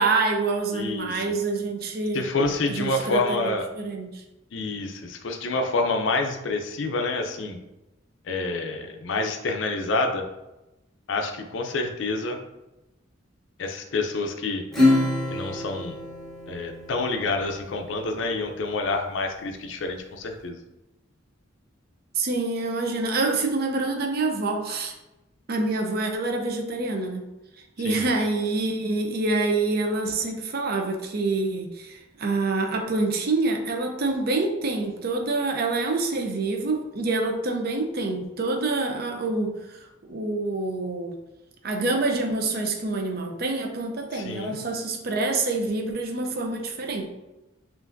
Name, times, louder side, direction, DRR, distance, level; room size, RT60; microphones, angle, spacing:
voice 1, 0.0-2.3 2.7-4.1 22.1-24.9 25.5-27.2 27.8-39.5 40.1-41.1 41.6-47.1, right 3 dB, 55° right, 3 dB, 0.5 m, -26 dB
voice 2, 0.7-1.3 2.1-3.7 4.5-7.6 8.2-10.2 11.1-12.4 13.6-14.6 15.3-16.0 16.5-20.6 27.8-28.1 44.1-44.6, left 3 dB, 70° left, 4 dB, 0.5 m, -28 dB
Acoustic guitar / Strum, 14.7-17.6, left 2 dB, ahead, 0.9 m, -25 dB
5.4 x 2.5 x 2.5 m, 0.97 s
head